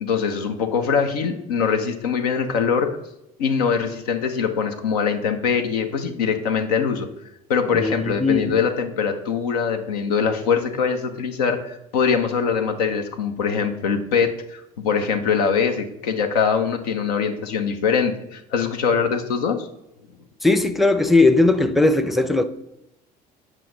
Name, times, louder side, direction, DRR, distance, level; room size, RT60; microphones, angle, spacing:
voice 1, 0.0-2.9 3.4-7.1 7.5-19.7, left 6 dB, 85° left, 7 dB, 0.7 m, -23 dB
voice 2, 7.7-8.5 20.4-22.4, left 2 dB, ahead, 9 dB, 0.5 m, -18 dB
7.5 x 4.9 x 3.8 m, 0.86 s
hypercardioid pair, 65°, 19 cm